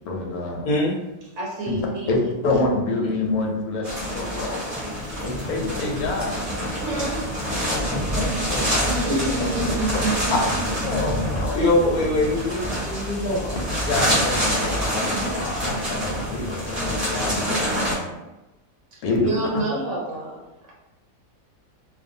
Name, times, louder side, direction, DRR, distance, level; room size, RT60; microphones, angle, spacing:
voice 1, 0.0-0.7 1.7-1.8 2.1-4.6 5.2-6.4 7.5-9.1 10.3-11.7 13.9-18.1 19.0-19.3, left 2 dB, 85° left, 0 dB, 1.1 m, -27 dB
voice 2, 1.4-2.3 5.0-5.2 6.8-7.2 8.9-10.4 18.9-20.4, right 2 dB, 65° right, -3 dB, 0.8 m, -28 dB
sound 1, 3.8-17.9, equal, 35° right, 0.7 m, -26 dB
voice 3, 11.5-13.5, left 2 dB, 40° left, -5 dB, 0.9 m, -22 dB
2.5 x 2.3 x 2.6 m, 0.99 s
omnidirectional pair, 1.5 m